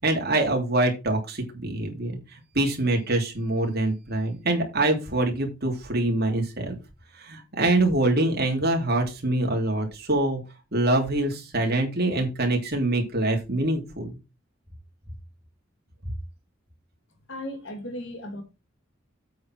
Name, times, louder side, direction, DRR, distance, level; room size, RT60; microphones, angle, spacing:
voice 1, 0.0-2.2 2.5-6.8 7.2-10.4 10.7-14.2, right 2 dB, 50° right, 3.0 m, -24 dB
voice 2, 17.3-18.4, left 1 dB, 65° left, 2.4 m, -36 dB
8.3 x 4.8 x 6.0 m
head